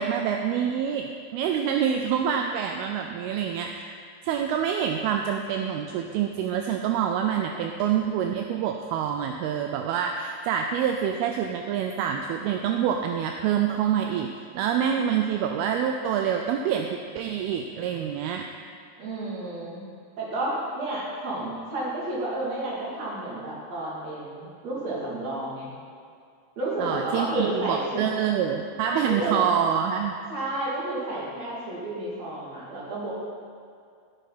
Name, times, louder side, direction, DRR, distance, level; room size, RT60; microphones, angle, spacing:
voice 1, 0.0-4.0 4.2-14.3 14.5-18.5 26.8-30.2, right 8 dB, 80° right, 4 dB, 2.5 m, -26 dB
voice 2, 19.0-19.8 20.2-25.7 26.6-28.1 28.8-29.4 30.3-33.1, right 1 dB, 45° right, -6 dB, 3.5 m, -31 dB
14.5 x 9.8 x 4.1 m, 2.2 s
omnidirectional pair, 4.6 m